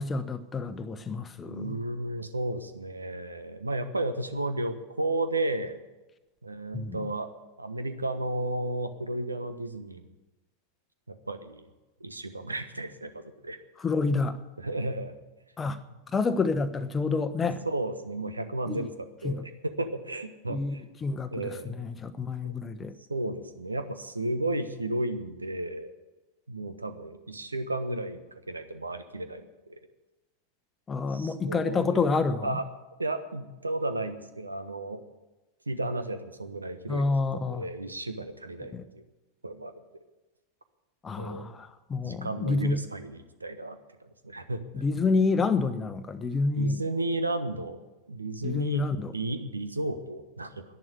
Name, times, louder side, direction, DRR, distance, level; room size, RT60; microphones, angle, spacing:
voice 1, 0.0-1.8 6.7-7.0 13.8-14.4 15.6-15.8 16.1-17.6 18.7-18.9 19.2-19.4 20.5-23.0 30.9-32.6 36.9-37.6 38.7-38.8 41.0-42.8 44.7-46.8 48.4-49.1, left 4 dB, 15° left, 9 dB, 1.0 m, -28 dB
voice 2, 1.4-5.8 6.4-7.3 7.6-10.1 11.1-11.7 12.0-13.6 14.6-15.2 15.9-16.0 17.4-18.9 19.2-20.8 21.3-21.7 22.4-22.5 23.1-25.9 26.5-29.7 31.1-32.1 32.4-32.7 33.0-35.0 35.7-37.0 37.3-39.0 39.4-40.0 41.2-41.5 42.0-44.8 46.5-47.8 48.1-50.6, right 2 dB, 80° right, 10 dB, 1.2 m, -33 dB
11.0 x 11.0 x 9.7 m, 1.1 s
figure-of-eight pair, 90°, 0 cm